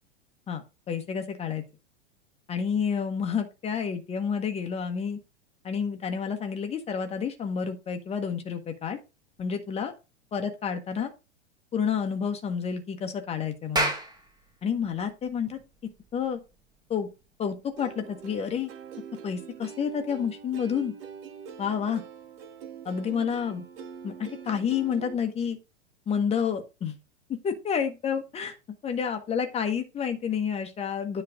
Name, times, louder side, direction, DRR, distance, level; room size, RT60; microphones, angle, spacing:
voice 1, 0.5-1.6 2.5-5.2 5.6-9.0 9.4-9.9 10.3-11.1 11.7-13.9 14.6-15.6 16.1-16.4 16.9-17.1 17.4-18.7 19.2-20.9 21.6-22.0 22.8-23.6 24.0-25.6 26.1-27.0 27.4-28.6 28.8-31.2, left 7 dB, 20° left, 6 dB, 1.1 m, -29 dB
Clapping, 13.6-18.4, right 1 dB, 10° right, 1.6 m, -34 dB
Plucked string instrument, 17.8-25.1, right 7 dB, 55° right, 1.0 m, -44 dB
9.6 x 3.3 x 4.9 m, 0.29 s
figure-of-eight pair, 95°, 34 cm